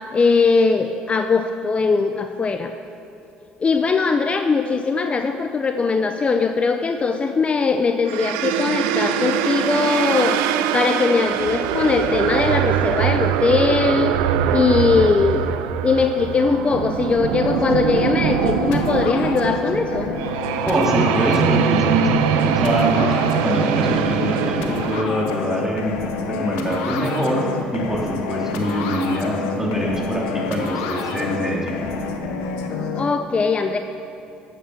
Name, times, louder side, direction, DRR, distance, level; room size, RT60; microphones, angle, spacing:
voice 1, 0.1-2.7 3.6-10.5 10.7-14.1 14.5-15.5 15.8-20.1 33.0-33.8, left 4 dB, 30° left, 7 dB, 0.6 m, -20 dB
sound 1, 8.1-25.0, right 9 dB, 85° right, 0.6 m, -22 dB
sound 2, 17.4-33.0, left 4 dB, 85° left, 1.2 m, -28 dB
voice 2, 20.7-23.2 23.4-31.8, equal, 10° right, -3 dB, 3.3 m, -23 dB
11.5 x 8.4 x 7.3 m, 3.0 s
supercardioid pair, 75°, 4 cm